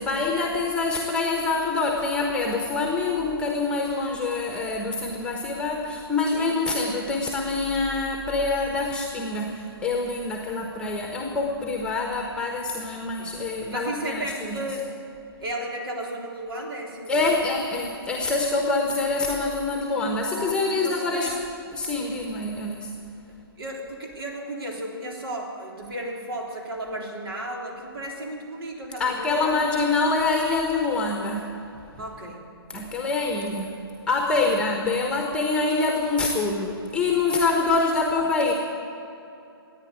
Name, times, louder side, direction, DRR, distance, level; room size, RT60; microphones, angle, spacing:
voice 1, 0.0-14.6 17.1-21.3 21.7-22.9 29.0-31.5 32.7-33.8 34.1-38.5, left 3 dB, 5° left, 2 dB, 1.2 m, -25 dB
voice 2, 13.7-14.9 15.4-17.4 20.3-21.4 23.6-29.6 32.0-32.4 34.4-34.6, right 1 dB, 65° right, 0 dB, 3.5 m, -34 dB
14.5 x 9.7 x 9.5 m, 2.8 s
hypercardioid pair, 140°, 13 cm